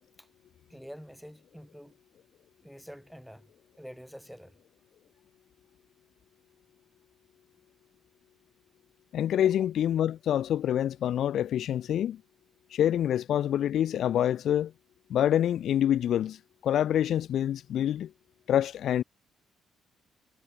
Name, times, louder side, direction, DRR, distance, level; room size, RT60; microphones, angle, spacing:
voice 1, 0.7-2.0 2.6-3.5 3.8-4.6, equal, ahead, 3.9 m, -47 dB
voice 2, 9.1-12.2 12.7-14.7 15.1-16.4 16.6-18.1 18.5-19.0, left 10 dB, 70° left, 0.5 m, -26 dB
cardioid pair, 90°, 0 cm